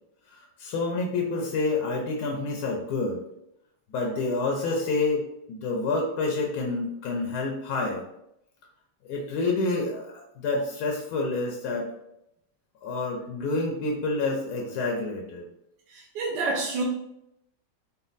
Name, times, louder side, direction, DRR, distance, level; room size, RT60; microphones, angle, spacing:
voice 1, 0.3-3.2 3.9-5.2 5.5-8.0 9.1-11.9 12.8-15.4, left 3 dB, 70° left, 0 dB, 0.9 m, -28 dB
voice 2, 15.9-16.8, right 3 dB, 70° right, -3 dB, 1.2 m, -28 dB
4.1 x 2.2 x 3.9 m, 0.80 s
omnidirectional pair, 2.3 m